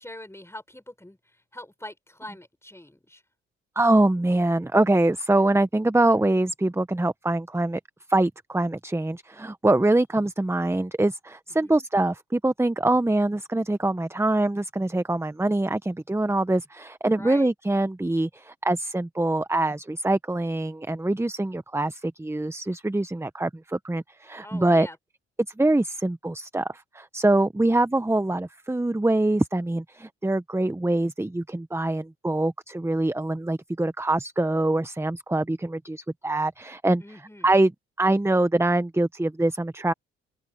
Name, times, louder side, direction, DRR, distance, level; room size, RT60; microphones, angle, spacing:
voice 1, 0.0-3.2 11.5-11.9 17.1-17.5 24.4-25.0 37.0-37.5, left 1 dB, 10° left, 7.0 m, -43 dB
voice 2, 3.8-7.8 8.1-24.9 25.6-37.0 37.4-37.7 38.0-39.9, right 2 dB, 10° right, 1.1 m, -24 dB
open air
hypercardioid pair, 50°, 29 cm